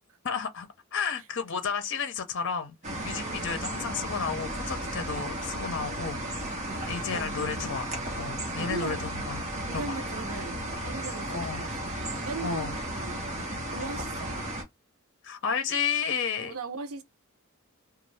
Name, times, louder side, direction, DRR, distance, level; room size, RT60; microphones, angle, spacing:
voice 1, 0.2-2.8 3.0-6.5 6.8-9.5 9.7-9.9 11.3-11.7 12.4-12.8 15.2-16.6, left 6 dB, 60° left, 0.6 m, -32 dB
sound 1, 2.8-14.6, right 1 dB, 35° right, 1.1 m, -34 dB
voice 2, 3.1-4.0 6.7-7.7 8.6-9.0 9.7-13.2 13.7-14.5 16.4-17.0, right 4 dB, 70° right, 0.6 m, -39 dB
2.6 x 2.3 x 3.2 m
head